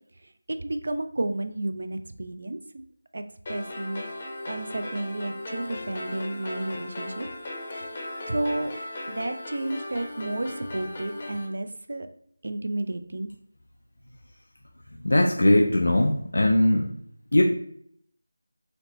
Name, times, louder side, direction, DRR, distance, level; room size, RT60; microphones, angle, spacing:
voice 1, 0.5-2.8 3.1-3.2 3.5-7.3 8.3-8.7 9.1-12.1 12.4-13.3, right 2 dB, 60° right, 9 dB, 0.3 m, -32 dB
sound 1, 3.5-11.5, left 1 dB, 30° left, 0.6 m, -37 dB
voice 2, 15.0-16.9 17.3-17.4, left 1 dB, 70° left, 1 dB, 0.4 m, -20 dB
4.2 x 2.0 x 2.9 m, 0.65 s
figure-of-eight pair, 170°, 0 cm